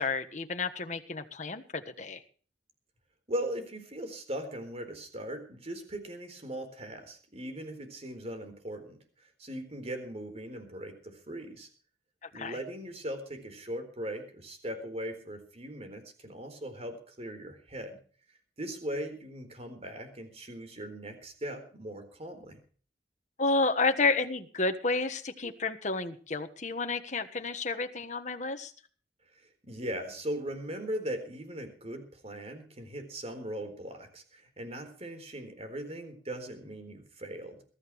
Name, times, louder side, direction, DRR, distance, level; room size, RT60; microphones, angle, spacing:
voice 1, 0.0-2.2 12.3-12.5 23.4-28.7, left 3 dB, 45° left, 7 dB, 1.4 m, -30 dB
voice 2, 3.3-9.0 9.4-11.7 12.3-18.0 18.6-22.6 29.4-37.6, right 1 dB, 35° right, 7 dB, 4.1 m, -39 dB
22.5 x 14.0 x 3.2 m, 0.42 s
head